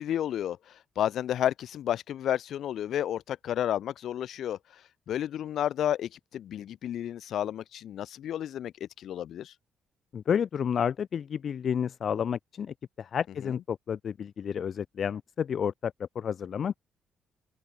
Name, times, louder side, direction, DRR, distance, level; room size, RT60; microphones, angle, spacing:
voice 1, 0.0-4.6 5.1-9.5 13.4-13.6, left 11 dB, 55° left, 1.8 m, -31 dB
voice 2, 10.1-16.8, left 8 dB, 40° left, 0.7 m, -31 dB
open air
cardioid pair, 175°, 0 cm